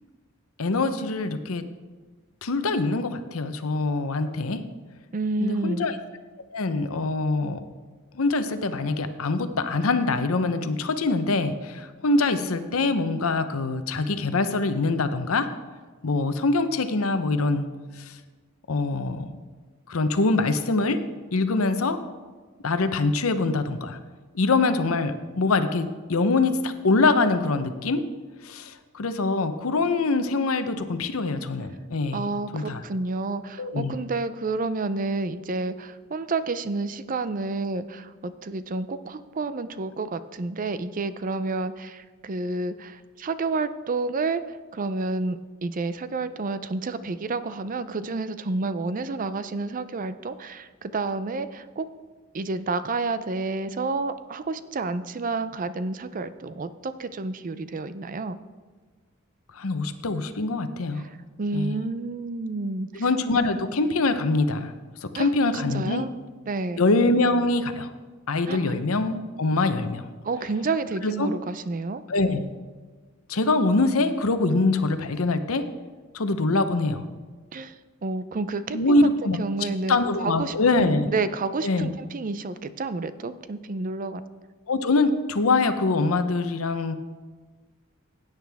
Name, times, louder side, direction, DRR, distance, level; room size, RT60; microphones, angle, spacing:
voice 1, 0.6-1.6 2.4-4.6 5.4-6.0 6.5-7.6 8.1-15.5 16.0-17.7 18.0-18.1 18.7-19.4 19.9-21.0 21.3-22.0 22.6-24.0 24.3-28.0 28.4-32.8 33.6-33.9 59.5-61.0 61.5-61.8 62.9-64.7 65.0-66.1 66.8-67.9 68.3-70.1 71.0-71.3 72.1-72.4 73.3-75.7 76.1-77.0 78.7-81.1 81.6-81.9 84.7-87.0, left 3 dB, 85° left, 10 dB, 0.8 m, -24 dB
voice 2, 5.1-5.9 32.1-51.9 52.3-58.4 61.4-63.0 65.1-65.3 65.7-66.1 66.5-66.8 68.5-68.7 70.2-72.0 77.5-77.7 78.0-80.0 80.2-84.2, right 3 dB, 40° right, 13 dB, 0.5 m, -30 dB
16.5 x 9.1 x 3.5 m, 1.4 s
head